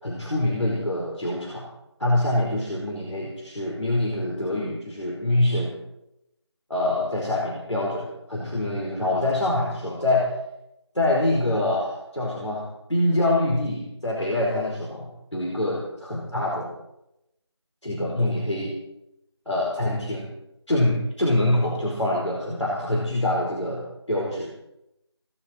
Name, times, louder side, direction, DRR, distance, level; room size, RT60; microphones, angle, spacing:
voice 1, 0.0-1.7 2.0-5.7 6.7-10.3 10.9-16.7 17.8-18.7 19.4-20.3 20.7-24.5, left 1 dB, 90° left, -3 dB, 4.7 m, -25 dB
18.0 x 16.0 x 4.6 m, 0.86 s
figure-of-eight pair, 175°, 15 cm